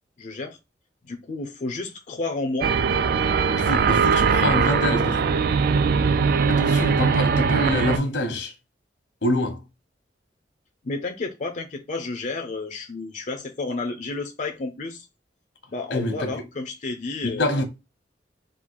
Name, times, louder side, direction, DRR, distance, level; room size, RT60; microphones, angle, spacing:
voice 1, 0.2-0.6 1.0-2.7 10.8-15.1 15.7-17.5, left 3 dB, 45° left, 0.5 m, -31 dB
sound 1, 2.6-8.0, right 5 dB, 55° right, 0.3 m, -21 dB
voice 2, 3.5-5.3 6.5-8.5 9.2-9.6 15.9-16.3 17.2-17.6, left 1 dB, 80° left, 1.1 m, -25 dB
3.7 x 2.3 x 4.5 m
head